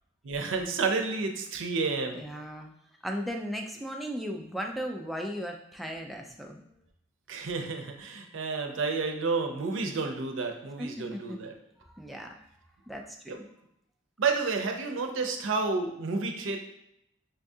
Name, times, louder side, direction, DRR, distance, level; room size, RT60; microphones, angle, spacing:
voice 1, 0.2-2.2 7.3-11.5 13.3-13.4 14.2-16.6, right 4 dB, 85° right, 4 dB, 0.5 m, -30 dB
voice 2, 2.1-2.7 3.0-6.7 10.8-11.4 11.9-12.3 12.9-13.4, equal, ahead, 1 dB, 0.3 m, -36 dB
5.4 x 2.3 x 2.6 m, 0.80 s
head